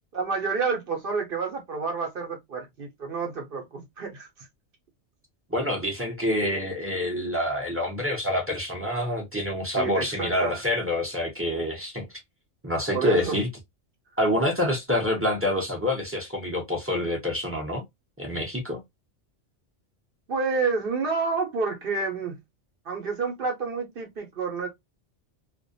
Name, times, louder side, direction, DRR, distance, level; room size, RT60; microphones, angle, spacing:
voice 1, 0.1-4.5 9.8-10.6 12.9-13.4 20.3-22.4 22.9-24.7, right 4 dB, 55° right, 0.8 m, -29 dB
voice 2, 5.5-12.0 12.6-13.5 14.2-17.8 18.2-18.8, left 1 dB, 15° right, 0.5 m, -27 dB
2.4 x 2.1 x 2.4 m
omnidirectional pair, 1.3 m